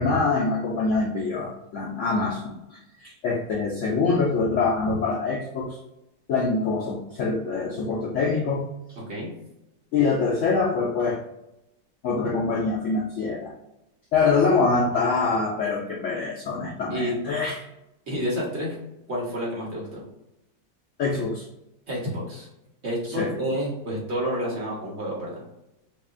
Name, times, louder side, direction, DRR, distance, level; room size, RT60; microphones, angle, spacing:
voice 1, 0.0-5.8 6.3-8.7 9.9-11.2 12.0-13.5 14.1-17.6 21.0-21.4 23.2-23.3, left 4 dB, 85° left, -2 dB, 0.6 m, -24 dB
voice 2, 18.1-18.8 19.1-20.0 21.9-22.5 22.8-25.4, equal, 45° right, -4 dB, 1.1 m, -29 dB
5.6 x 2.2 x 2.5 m, 0.88 s
omnidirectional pair, 2.0 m